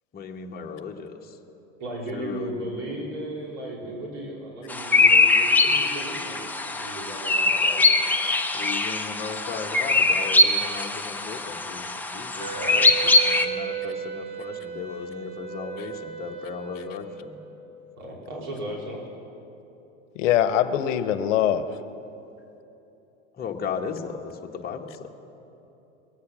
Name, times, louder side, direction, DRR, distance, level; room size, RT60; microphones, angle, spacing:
voice 1, 0.1-1.1 2.1-2.7 8.5-12.9 13.2-17.3 23.4-25.1, left 6 dB, 25° left, 2 dB, 1.3 m, -36 dB
voice 2, 1.8-8.1 12.5-12.8 18.0-19.0, right 1 dB, 60° right, -2 dB, 3.5 m, -36 dB
sound 1, 4.7-13.5, left 2 dB, 5° left, 0.8 m, -22 dB
Wind instrument woodwind instrument, 12.4-17.6, right 7 dB, 25° right, 1.6 m, -35 dB
voice 3, 20.2-21.6, left 10 dB, 70° left, 12 dB, 1.0 m, -22 dB
22.0 x 8.4 x 6.2 m, 3.0 s
hypercardioid pair, 105°, 39 cm